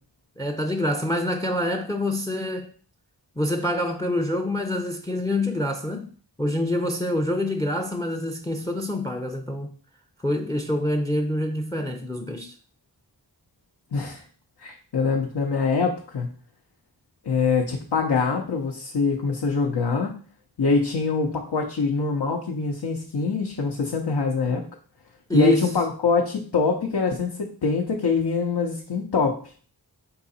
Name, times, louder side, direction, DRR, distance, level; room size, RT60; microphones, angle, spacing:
voice 1, 0.4-2.7 3.4-6.1 6.4-9.7 10.2-12.5 25.3-25.7, left 1 dB, 10° left, 0.4 m, -26 dB
voice 2, 13.9-14.2 14.6-16.3 17.2-20.1 20.6-24.6 25.3-29.4, left 4 dB, 70° left, 0.7 m, -24 dB
4.7 x 2.8 x 4.0 m
wide cardioid pair, 45°, 41 cm